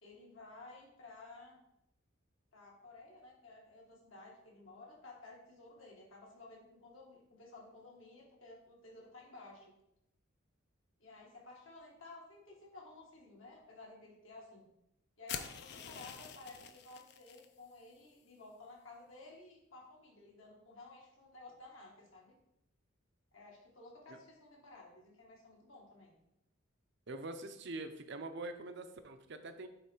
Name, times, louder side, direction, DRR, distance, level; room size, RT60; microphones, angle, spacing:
voice 1, 0.0-1.6 2.5-9.7 11.0-14.6 15.2-22.3 23.3-26.2, left 2 dB, 75° left, -2 dB, 1.8 m, -54 dB
sound 1, 15.3-17.5, left 8 dB, 50° left, 0.5 m, -46 dB
voice 2, 27.1-29.7, right 2 dB, 55° right, 8 dB, 0.6 m, -44 dB
7.9 x 3.2 x 4.5 m, 0.81 s
head